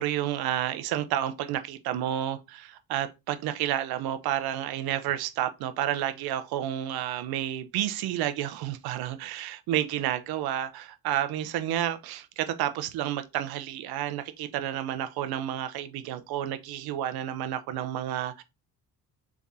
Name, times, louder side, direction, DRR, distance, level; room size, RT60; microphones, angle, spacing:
voice 1, 0.0-18.4, right 11 dB, 70° right, 0.7 m, -30 dB
3.6 x 3.6 x 4.0 m
cardioid pair, 100°, 38 cm